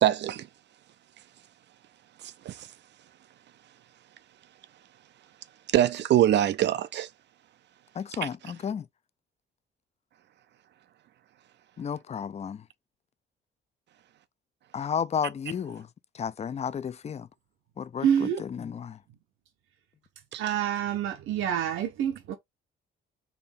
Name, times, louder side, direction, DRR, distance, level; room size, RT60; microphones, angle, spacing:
voice 1, 0.0-0.5 2.5-2.7 5.7-7.1 8.2-8.3 20.3-20.4, right 12 dB, 60° right, 0.5 m, -23 dB
voice 2, 8.0-8.9 11.8-12.6 14.7-15.9 16.1-17.3 17.8-19.0, left 7 dB, 35° left, 0.5 m, -33 dB
voice 3, 18.0-18.5 20.4-22.3, right 9 dB, 85° right, 1.0 m, -27 dB
4.3 x 2.8 x 3.6 m
cardioid pair, 90°, 20 cm